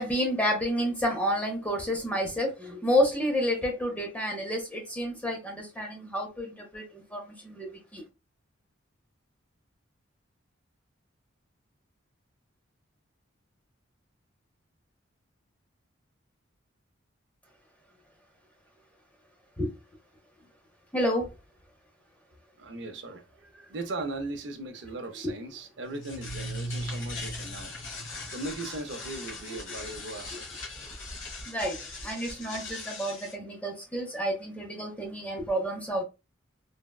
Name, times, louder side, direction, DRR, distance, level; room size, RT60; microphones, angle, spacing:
voice 1, 0.0-8.0 19.6-19.7 20.9-21.3 31.5-36.0, equal, 5° left, 0.6 m, -30 dB
voice 2, 22.6-27.7 28.1-30.6, right 2 dB, 65° right, 0.6 m, -38 dB
sound 1, 25.8-33.3, left 1 dB, 75° left, 1.2 m, -39 dB
3.4 x 2.1 x 2.2 m
head